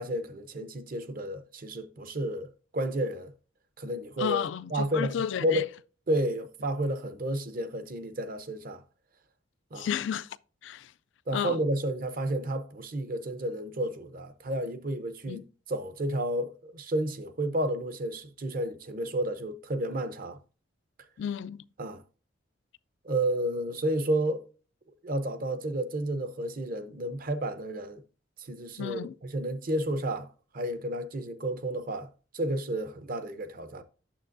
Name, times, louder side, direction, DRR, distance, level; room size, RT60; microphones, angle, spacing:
voice 1, 0.0-3.3 3.8-4.4 4.7-5.1 5.4-5.7 6.1-8.8 9.7-9.9 11.3-15.4 15.7-20.4 21.8-22.0 23.0-24.4 25.0-28.0 28.4-30.3 30.5-32.1 32.3-33.8, right 1 dB, 45° right, 0.7 m, -31 dB
voice 2, 4.2-5.6 9.8-10.4 10.6-10.9 11.3-11.6 15.3-15.4 21.2-21.6 28.8-29.1, left 8 dB, 65° left, 0.3 m, -32 dB
8.9 x 7.0 x 2.6 m
head